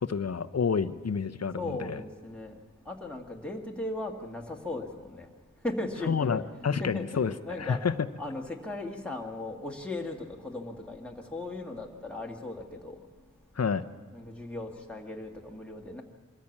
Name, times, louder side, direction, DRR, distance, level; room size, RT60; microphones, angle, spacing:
voice 1, 0.0-2.0 6.1-8.1 13.6-13.8, left 6 dB, 55° left, 12 dB, 0.8 m, -29 dB
voice 2, 1.6-2.6 2.8-5.3 5.6-13.1 14.1-16.0, left 2 dB, 5° left, 0 dB, 2.0 m, -38 dB
23.5 x 13.5 x 8.6 m, 1.5 s
wide cardioid pair, 90°, 31 cm